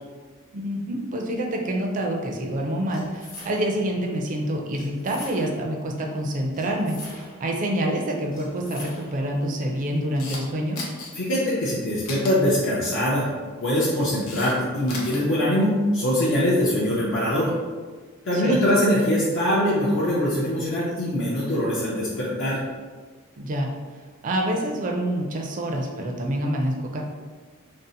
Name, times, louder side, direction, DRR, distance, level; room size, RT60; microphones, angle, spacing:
voice 1, 0.5-10.8 18.3-18.6 23.4-23.7 24.2-27.0, right 1 dB, 40° right, 1 dB, 0.4 m, -27 dB
sound 1, 2.9-3.9 4.7-5.7 6.5-7.5 8.3-9.3, left 1 dB, 40° left, 0.9 m, -44 dB
Camera, 9.9-10.4 10.7-11.1 12.0-12.3 13.6-14.5 14.8-15.2, left 3 dB, 90° left, 0.7 m, -36 dB
voice 2, 11.2-13.3 13.6-17.5 18.2-22.6, equal, 60° left, -7 dB, 0.5 m, -22 dB
2.6 x 2.0 x 3.8 m, 1.5 s
head